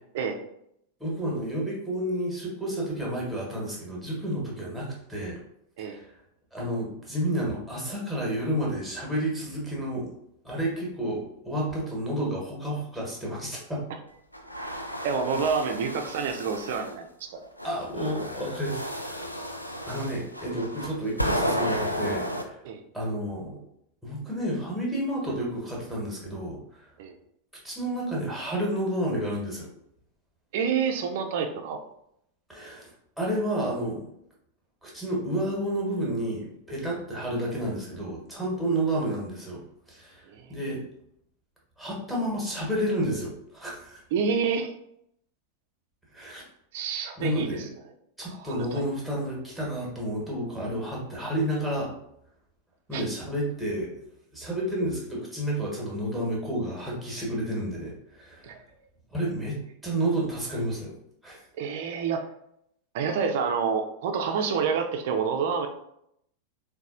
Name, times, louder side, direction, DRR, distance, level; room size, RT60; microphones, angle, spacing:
voice 1, 1.0-5.4 5.8-6.2 6.5-10.1 10.4-13.8 17.6-19.3 19.9-22.6 22.9-23.6 24.0-26.9 27.6-29.7 32.5-32.9 33.2-34.0 34.8-39.6 39.9-40.8 41.8-44.0 46.1-46.4 47.2-47.7 48.2-51.9 52.9-54.0 54.3-58.6 59.1-61.0 61.2-61.4, right 1 dB, ahead, -4 dB, 1.1 m, -30 dB
sound 1, 14.3-16.9 17.6-22.4, equal, 90° left, 0.3 m, -32 dB
voice 2, 15.0-17.5 22.6-22.8 27.0-27.1 30.5-31.8 40.3-40.5 44.1-44.7 46.7-47.7 48.4-48.8 52.9-53.0 58.4-58.6 61.6-62.3 62.9-65.7, right 6 dB, 50° right, 5 dB, 0.4 m, -28 dB
4.0 x 2.2 x 2.4 m, 0.74 s
figure-of-eight pair, 90°, 0 cm